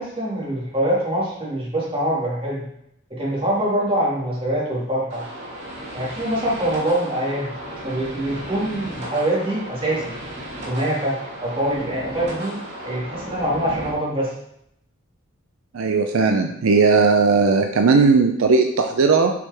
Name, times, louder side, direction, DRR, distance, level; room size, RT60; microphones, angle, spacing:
voice 1, 0.0-2.6 3.1-5.2 5.9-7.5 7.8-10.0 10.6-12.6 12.8-14.3, right 1 dB, 25° right, -6 dB, 2.1 m, -24 dB
sound 1, 5.1-13.9, right 1 dB, 50° right, 2.1 m, -35 dB
voice 2, 15.7-19.3, right 4 dB, 75° right, 5 dB, 0.5 m, -17 dB
7.0 x 4.8 x 3.4 m, 0.77 s
head